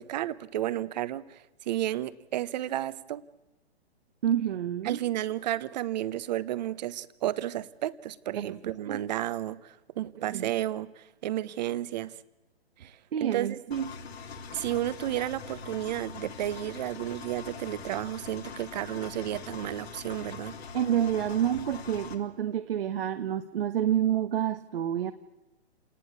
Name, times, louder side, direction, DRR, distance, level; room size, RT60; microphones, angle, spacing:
voice 1, 0.0-3.2 4.8-12.1 12.8-13.6 14.5-20.5, right 13 dB, 40° right, 16 dB, 1.1 m, -32 dB
voice 2, 4.2-5.0 8.3-8.5 8.9-9.0 10.2-10.5 13.1-13.9 20.7-25.1, right 10 dB, 60° right, 8 dB, 1.3 m, -28 dB
Engine, 13.7-22.1, left 5 dB, 70° left, 3.4 m, -43 dB
27.5 x 19.0 x 8.6 m, 1.1 s
hypercardioid pair, 140°, 32 cm